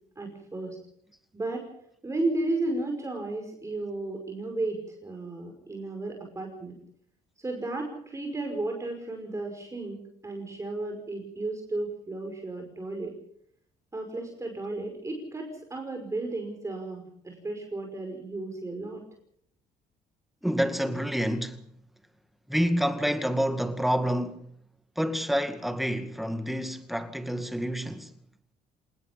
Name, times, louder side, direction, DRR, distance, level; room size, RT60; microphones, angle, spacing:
voice 1, 0.2-0.8 1.3-1.7 2.0-6.8 7.4-13.1 13.9-19.0, right 2 dB, 15° right, 5.5 m, -34 dB
voice 2, 20.4-21.6 22.5-24.5 25.0-28.1, equal, ahead, 2.2 m, -28 dB
27.0 x 20.0 x 5.4 m
cardioid pair, 110°, 17 cm